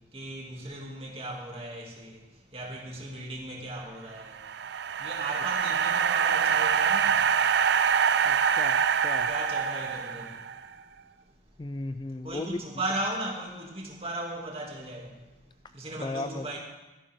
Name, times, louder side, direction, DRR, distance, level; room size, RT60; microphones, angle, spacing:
voice 1, 0.1-2.1 2.5-4.3 5.0-7.1 9.3-10.3 12.2-15.1 15.7-16.6, right 1 dB, 30° right, 2.6 m, -36 dB
sound 1, 4.2-10.6, right 7 dB, 70° right, 0.4 m, -25 dB
voice 2, 8.2-9.3 11.6-12.6 16.0-16.5, left 2 dB, 25° left, 0.3 m, -36 dB
16.5 x 13.5 x 3.7 m
head